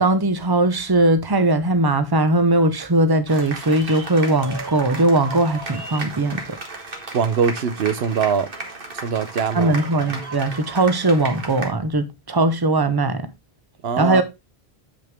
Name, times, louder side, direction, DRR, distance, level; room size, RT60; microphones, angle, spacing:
voice 1, 0.0-6.4 9.5-13.3 14.0-14.2, right 2 dB, 25° right, 0.9 m, -19 dB
sound 1, 3.3-11.7, right 3 dB, 60° right, 2.0 m, -34 dB
voice 2, 7.1-8.5 9.0-9.7 13.8-14.2, right 7 dB, 85° right, 1.0 m, -22 dB
7.9 x 6.3 x 3.5 m
omnidirectional pair, 1.0 m